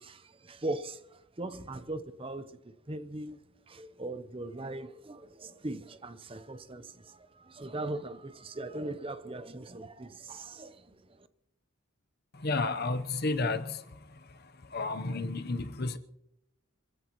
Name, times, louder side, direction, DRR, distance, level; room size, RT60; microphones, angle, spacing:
voice 1, 0.0-3.4 3.7-11.3, right 2 dB, 25° right, 0.8 m, -40 dB
voice 2, 12.4-13.8 14.7-16.0, left 3 dB, 50° left, 0.9 m, -31 dB
27.0 x 15.0 x 3.1 m
head